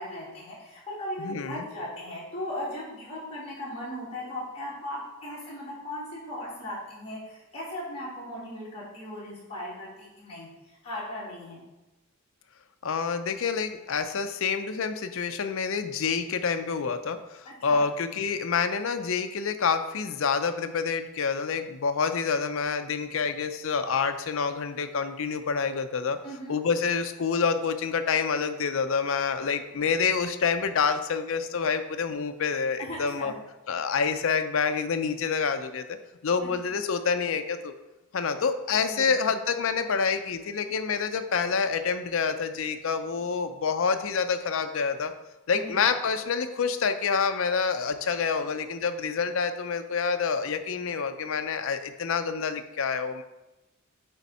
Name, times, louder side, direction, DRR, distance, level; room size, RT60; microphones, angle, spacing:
voice 1, 0.0-10.5 10.8-11.6 17.4-17.8 26.2-26.6 32.8-33.3 36.4-36.5 38.7-39.3 45.5-46.0, left 1 dB, 25° left, -7 dB, 2.3 m, -38 dB
voice 2, 1.2-1.7 12.8-26.2 26.5-33.3 33.7-35.8 36.2-37.7 38.1-45.1 45.5-53.2, left 5 dB, 65° left, 9 dB, 0.5 m, -27 dB
8.3 x 3.6 x 4.2 m, 1.0 s
head